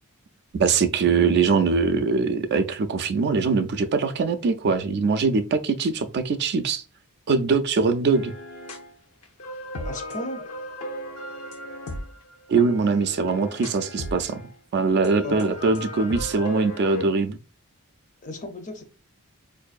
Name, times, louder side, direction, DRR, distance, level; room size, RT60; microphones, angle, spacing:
voice 1, 0.5-6.8 7.3-8.3 12.5-14.4 14.7-17.4, right 4 dB, 50° right, 0.4 m, -22 dB
sound 1, 8.1-8.9 9.2-14.5 15.0-17.0, left 1 dB, 75° left, 0.7 m, -36 dB
voice 2, 9.8-10.4 15.2-15.9 18.2-18.8, left 2 dB, 35° left, 0.6 m, -35 dB
4.5 x 2.6 x 2.3 m
head